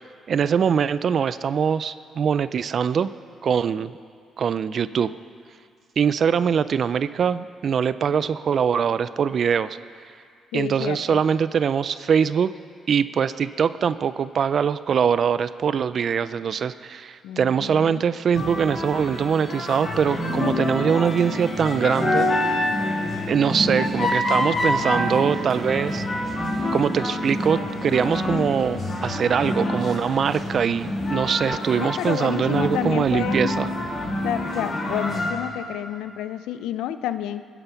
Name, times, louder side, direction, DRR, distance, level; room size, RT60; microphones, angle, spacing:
voice 1, 0.3-3.1 3.4-3.9 4.4-5.1 6.0-9.8 10.5-12.5 12.9-22.3 23.3-26.0 26.7-33.7, right 7 dB, 55° right, 15 dB, 0.4 m, -22 dB
voice 2, 10.5-11.2 17.2-18.0 31.7-33.6 34.2-37.5, left 11 dB, 90° left, 12 dB, 0.5 m, -30 dB
sound 1, 18.3-35.3, left 1 dB, 45° left, 3.4 m, -26 dB
20.0 x 9.9 x 5.8 m, 2.3 s
cardioid pair, 90°, 0 cm